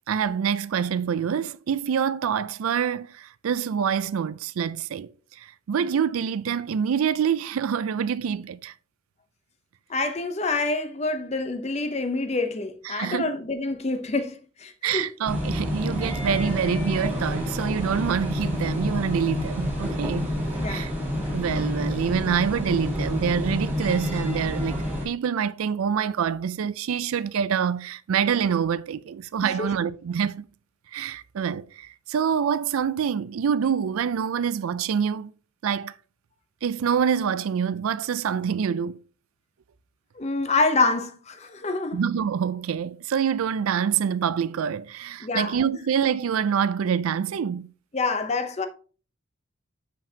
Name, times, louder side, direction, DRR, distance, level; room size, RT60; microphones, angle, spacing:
voice 1, 0.1-8.7 12.8-13.3 14.8-20.3 20.6-20.9 21.3-30.5 30.9-35.3 35.6-35.9 36.6-39.0 41.9-47.7, right 7 dB, 85° right, 0.4 m, -26 dB
voice 2, 9.9-15.1 20.6-20.9 29.4-29.7 40.2-42.0 45.2-45.6 47.9-48.7, left 3 dB, 30° left, 0.6 m, -27 dB
sound 1, 15.2-25.0, left 1 dB, 10° right, 2.1 m, -28 dB
6.9 x 5.8 x 2.8 m
head